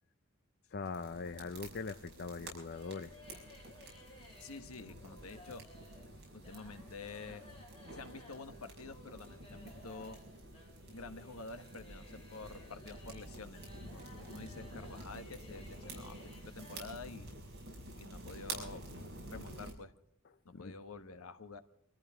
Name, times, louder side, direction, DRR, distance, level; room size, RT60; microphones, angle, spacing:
voice 1, 0.7-3.1 20.5-20.7, left 4 dB, 50° left, 10 dB, 0.5 m, -41 dB
sound 1, 0.8-19.7, right 2 dB, 50° right, 6.2 m, -49 dB
sound 2, 2.7-16.8, left 2 dB, 25° left, 7.0 m, -58 dB
voice 2, 4.4-5.7 6.3-7.5 7.9-10.2 10.9-17.3 17.9-18.8 19.3-19.9 20.4-21.6, left 3 dB, 80° left, 9 dB, 1.3 m, -49 dB
25.5 x 14.5 x 3.6 m, 0.75 s
head